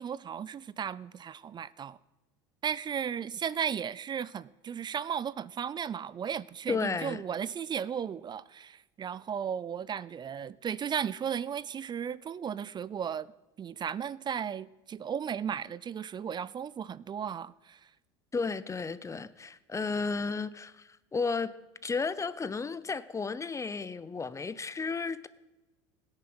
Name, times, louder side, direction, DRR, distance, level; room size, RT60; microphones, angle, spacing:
voice 1, 0.0-2.0 2.6-13.3 13.6-17.8, right 8 dB, 30° right, 0.4 m, -35 dB
voice 2, 6.7-7.2 18.3-21.5 21.8-25.3, left 4 dB, 20° left, 0.7 m, -33 dB
17.0 x 9.7 x 6.1 m
hypercardioid pair, 85°, 15 cm